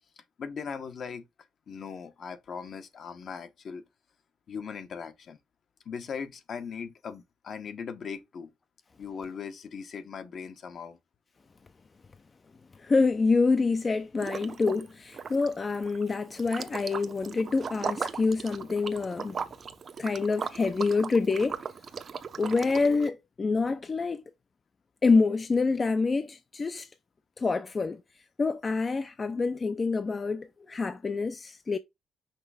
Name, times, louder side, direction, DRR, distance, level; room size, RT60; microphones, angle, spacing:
voice 1, 0.4-1.3 1.7-3.8 4.5-5.4 5.8-8.5 9.0-11.0, left 6 dB, 55° left, 1.0 m, -39 dB
voice 2, 12.8-19.4 20.0-21.6 22.4-24.2 25.0-26.9 27.4-28.0 28.4-31.8, left 4 dB, 35° left, 0.5 m, -27 dB
Liquid, 14.2-14.9 15.1-23.1, right 6 dB, 45° right, 0.7 m, -38 dB
5.8 x 3.3 x 4.8 m
cardioid pair, 90°, 0 cm